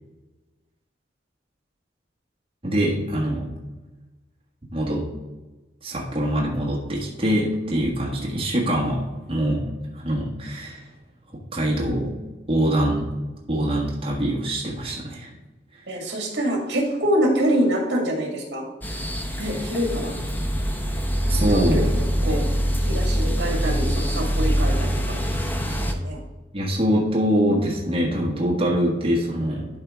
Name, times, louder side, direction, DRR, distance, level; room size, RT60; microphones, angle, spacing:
voice 1, 2.6-3.5 4.7-5.0 5.8-9.0 9.3-9.6 9.9-10.8 11.5-12.1 12.5-13.1 13.5-15.3 19.4-19.6 21.3-21.9 22.2-22.4 26.5-29.7, equal, 30° right, -4 dB, 1.5 m, -24 dB
voice 2, 15.9-18.6 19.4-20.1 21.4-21.8 22.2-22.4 22.8-25.2 25.8-26.2, equal, 65° right, 0 dB, 1.9 m, -25 dB
sound 1, 18.8-25.9, equal, 10° left, 0.6 m, -24 dB
12.0 x 4.5 x 3.6 m, 1.2 s
head